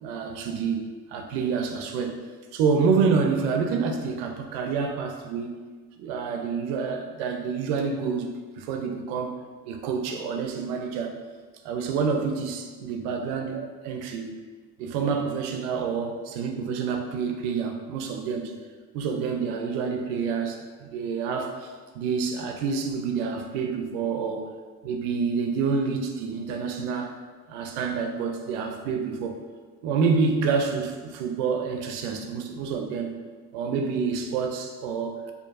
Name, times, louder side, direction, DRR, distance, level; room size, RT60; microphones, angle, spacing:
voice 1, 0.0-2.2 2.5-5.6 6.0-8.3 8.6-9.4 9.7-11.2 11.6-14.3 14.8-18.5 18.9-24.5 24.8-27.2 27.5-29.4 29.8-33.1 33.5-35.2, right 5 dB, 70° right, 4 dB, 0.6 m, -28 dB
4.5 x 2.7 x 2.4 m, 1.4 s
cardioid pair, 175°, 38 cm